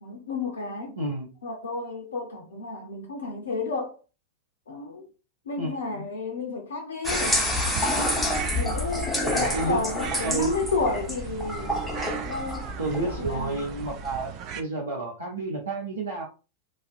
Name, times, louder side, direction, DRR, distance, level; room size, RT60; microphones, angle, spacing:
voice 1, 0.0-1.0 1.4-4.0 4.7-5.1 5.5-7.4 7.8-8.2 8.5-12.7 13.2-13.5, left 3 dB, 65° left, 0.5 m, -32 dB
voice 2, 1.0-1.3 5.6-6.1 9.4-9.8 10.2-10.7 12.8-16.2, right 2 dB, 75° right, 0.7 m, -30 dB
sound 1, 7.0-14.2, left 1 dB, 5° left, 0.7 m, -29 dB
sound 2, 7.1-14.6, right 8 dB, 40° right, 0.3 m, -38 dB
2.4 x 2.1 x 2.5 m
figure-of-eight pair, 90°, 0 cm